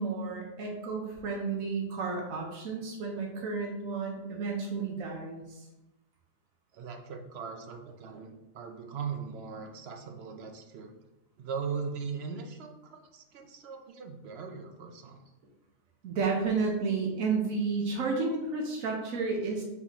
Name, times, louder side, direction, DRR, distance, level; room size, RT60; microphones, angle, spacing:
voice 1, 0.0-5.7 16.0-19.6, right 4 dB, 85° right, 0 dB, 1.2 m, -32 dB
voice 2, 6.7-10.9 11.4-15.2, right 6 dB, 65° right, 4 dB, 0.7 m, -39 dB
4.1 x 4.1 x 2.9 m, 0.97 s
omnidirectional pair, 1.4 m